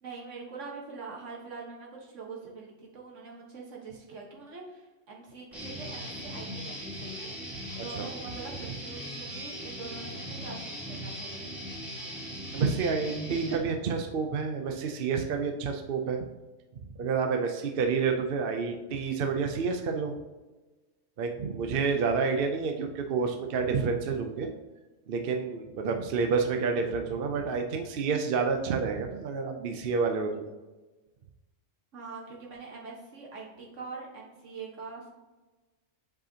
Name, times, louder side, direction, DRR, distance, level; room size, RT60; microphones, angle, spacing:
voice 1, 0.0-11.5 31.9-35.1, right 4 dB, 70° right, -1 dB, 1.6 m, -44 dB
Guitar, 5.5-13.6, equal, ahead, 2.0 m, -39 dB
voice 2, 7.8-8.1 12.5-16.2 16.8-20.1 21.2-24.5 25.1-30.5, right 5 dB, 55° right, 4 dB, 0.7 m, -29 dB
7.6 x 4.8 x 2.8 m, 1.2 s
omnidirectional pair, 1.3 m